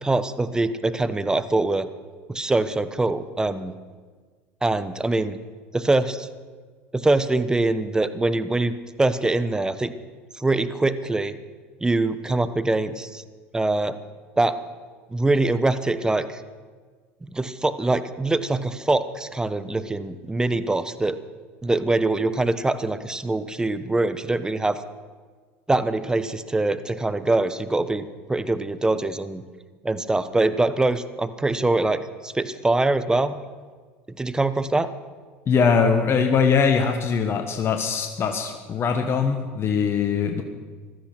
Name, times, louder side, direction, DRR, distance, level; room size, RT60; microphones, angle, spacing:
voice 1, 0.0-1.9 2.3-3.7 4.6-5.4 5.7-6.3 6.9-8.7 9.0-9.9 10.4-11.4 11.8-13.2 13.5-14.0 14.4-14.6 15.1-16.4 17.3-21.2 21.6-24.8 25.7-29.4 29.8-33.4 34.2-34.9, right 2 dB, 10° right, 13 dB, 1.0 m, -23 dB
voice 2, 35.5-40.4, left 5 dB, 40° left, 5 dB, 1.4 m, -21 dB
15.5 x 13.0 x 6.1 m, 1.5 s
hypercardioid pair, 85°, 7 cm